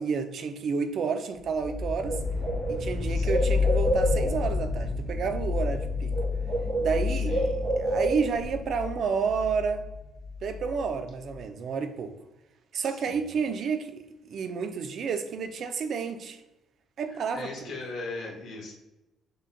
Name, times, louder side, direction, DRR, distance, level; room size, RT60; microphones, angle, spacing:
voice 1, 0.0-2.2 2.7-6.2 6.8-9.9 10.4-12.1 12.7-16.4 17.0-17.7, right 5 dB, 45° right, 0.3 m, -30 dB
sound 1, 1.5-11.4, left 4 dB, 40° left, 0.5 m, -31 dB
Bird, 1.6-1.7 2.0-4.5 5.6-5.8 6.1-8.5, right 2 dB, 85° right, 1.4 m, -29 dB
voice 2, 3.1-3.5 7.2-7.6 12.9-13.3 17.3-18.7, left 3 dB, 70° left, 1.2 m, -39 dB
6.3 x 2.1 x 2.7 m
cardioid pair, 160°, 0 cm